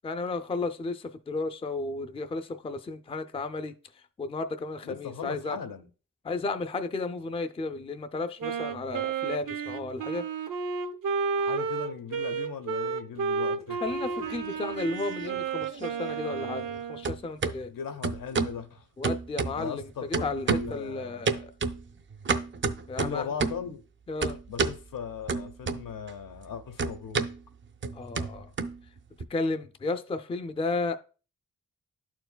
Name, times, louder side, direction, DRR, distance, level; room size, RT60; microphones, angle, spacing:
voice 1, 0.0-3.7 4.2-5.6 6.2-10.2 13.8-17.7 19.0-19.9 20.2-21.5 22.9-23.3 24.1-24.4 27.9-28.5 29.3-31.0, left 3 dB, 20° left, 0.4 m, -33 dB
voice 2, 4.8-5.9 11.4-13.8 17.7-18.9 19.6-21.3 23.0-23.8 24.5-27.2, left 7 dB, 80° left, 0.9 m, -38 dB
Wind instrument woodwind instrument, 8.4-17.1, right 5 dB, 75° right, 0.7 m, -32 dB
sound 1, 13.9-14.9 15.2-16.8 17.0-17.6 18.0-18.6 19.0-19.8 20.1-20.8 21.3-23.7 24.2-24.8 25.3-26.1 26.4-29.2, right 4 dB, 40° right, 0.4 m, -31 dB
12.5 x 4.5 x 2.2 m
wide cardioid pair, 155°, 32 cm